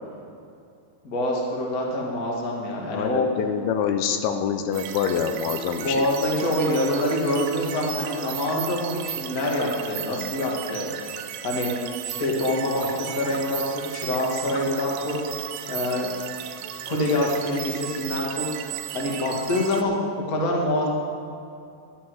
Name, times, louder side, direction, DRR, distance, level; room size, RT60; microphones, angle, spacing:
voice 1, 1.0-3.3 5.8-11.1 11.4-11.7 12.0-15.2 15.7-16.1 16.9-20.0 20.3-20.9, left 1 dB, 35° left, -2 dB, 1.4 m, -26 dB
voice 2, 2.9-6.1, left 7 dB, 80° left, 7 dB, 2.5 m, -26 dB
sound 1, 4.7-19.8, right 11 dB, 90° right, 2.7 m, -35 dB
11.5 x 11.0 x 6.4 m, 2.5 s
omnidirectional pair, 4.6 m